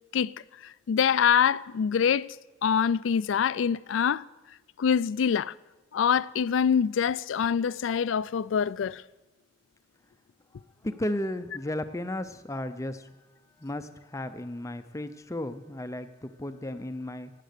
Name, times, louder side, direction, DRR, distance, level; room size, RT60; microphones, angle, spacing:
voice 1, 0.6-2.3 2.6-4.2 4.8-5.5 5.9-9.0, left 7 dB, 85° left, 0.4 m, -25 dB
voice 2, 10.8-13.1 13.6-17.3, left 1 dB, 15° left, 0.5 m, -34 dB
18.5 x 7.5 x 6.7 m
head